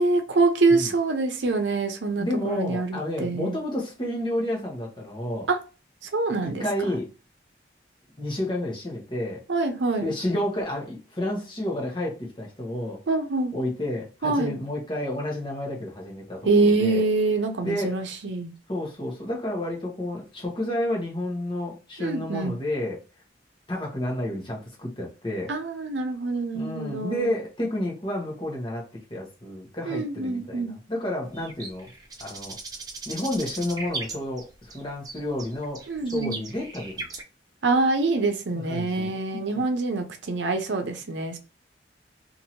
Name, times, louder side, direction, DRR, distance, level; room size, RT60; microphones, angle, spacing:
voice 1, 0.0-3.6 5.5-5.6 6.1-6.6 9.5-10.1 13.1-13.5 14.2-14.5 16.4-18.5 22.0-22.5 25.5-27.3 29.9-30.7 35.9-36.4 37.6-41.4, right 3 dB, 80° right, 0.6 m, -25 dB
voice 2, 2.2-5.5 6.4-7.1 8.2-9.4 10.0-13.0 13.5-17.0 17.6-18.0 18.7-23.0 23.7-25.5 26.5-28.8 29.1-31.9 32.2-32.6 33.1-35.8 36.1-37.1 38.5-39.6, left 1 dB, 25° left, 1.0 m, -30 dB
sound 1, 31.3-34.8 35.0-37.2, right 3 dB, 20° right, 0.5 m, -38 dB
2.8 x 2.6 x 2.9 m
head